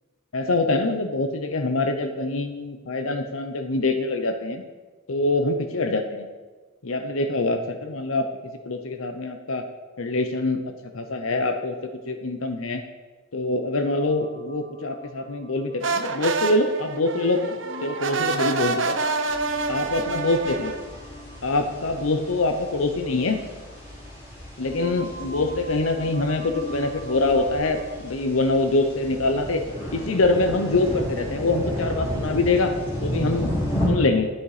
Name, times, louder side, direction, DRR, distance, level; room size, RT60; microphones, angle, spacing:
voice 1, 0.3-4.6 5.1-6.3 6.8-8.2 8.6-9.6 10.0-10.6 10.9-11.7 12.1-12.8 13.3-17.5 17.8-19.0 19.7-20.7 21.4-23.4 24.6-29.6 29.9-32.7 33.0-33.5 33.9-34.3, left 2 dB, 80° left, 7 dB, 0.8 m, -24 dB
sound 1, 13.9-17.1 17.6-24.4 24.7-27.9, left 1 dB, 35° right, 1.6 m, -42 dB
sound 2, 15.8-20.9, right 4 dB, 60° right, 0.8 m, -27 dB
sound 3, 19.3-33.9, equal, 30° left, 4.0 m, -33 dB
12.5 x 7.8 x 4.9 m, 1.3 s
head